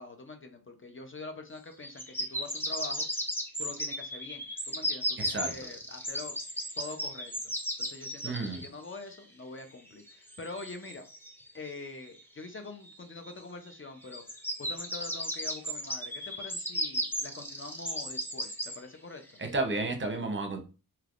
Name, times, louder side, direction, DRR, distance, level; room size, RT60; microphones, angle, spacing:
voice 1, 0.0-3.1 3.6-6.3 6.8-7.4 7.8-11.0 11.5-14.2 14.6-19.2, left 3 dB, 35° left, 6 dB, 0.6 m, -44 dB
sound 1, 1.8-8.7 10.1-11.7 13.3-13.4 13.7-13.8 14.1-18.8 19.4-19.5, equal, 5° left, 0.8 m, -35 dB
voice 2, 5.2-5.5 8.2-8.6 19.5-20.6, right 3 dB, 30° right, 4 dB, 0.8 m, -31 dB
3.3 x 2.9 x 2.5 m, 0.34 s
cardioid pair, 50°, 37 cm